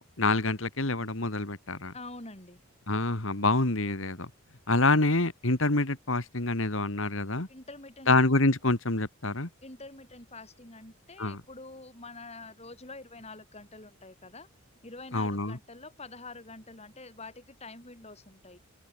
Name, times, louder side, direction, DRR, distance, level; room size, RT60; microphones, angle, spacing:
voice 1, 0.0-1.9 2.9-4.3 4.7-7.5 8.1-9.5 11.2-11.4 15.1-15.6, left 2 dB, 60° left, 2.3 m, -26 dB
voice 2, 1.9-2.6 7.5-8.1 9.6-14.5 14.8-18.6, left 3 dB, 30° left, 7.3 m, -46 dB
open air
head